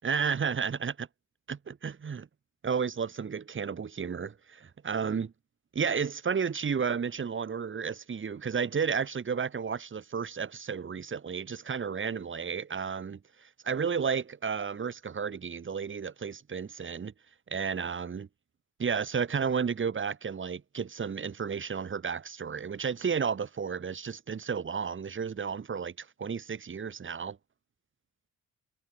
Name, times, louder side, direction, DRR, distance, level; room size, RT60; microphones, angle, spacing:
voice 1, 0.0-1.1 1.5-2.3 2.6-5.3 5.7-17.1 17.5-18.3 18.8-27.4, right 6 dB, 40° right, 4.4 m, -32 dB
cardioid pair, 90°, 30 cm